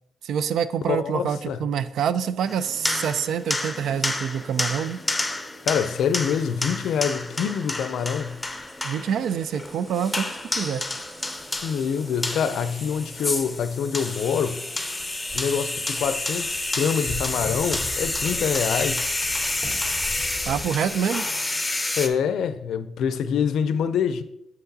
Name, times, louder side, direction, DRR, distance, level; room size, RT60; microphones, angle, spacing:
voice 1, 0.2-5.0 8.8-10.8 20.5-21.3, right 8 dB, 75° right, 0.4 m, -26 dB
voice 2, 0.9-1.6 5.7-8.4 11.6-14.6 15.3-19.0 22.0-24.2, left 7 dB, 75° left, 0.5 m, -25 dB
sound 1, 2.5-22.1, left 2 dB, 10° left, 0.6 m, -29 dB
sound 2, 8.3-21.0, equal, 25° right, 1.4 m, -42 dB
7.6 x 5.8 x 2.8 m
cardioid pair, 120°, 0 cm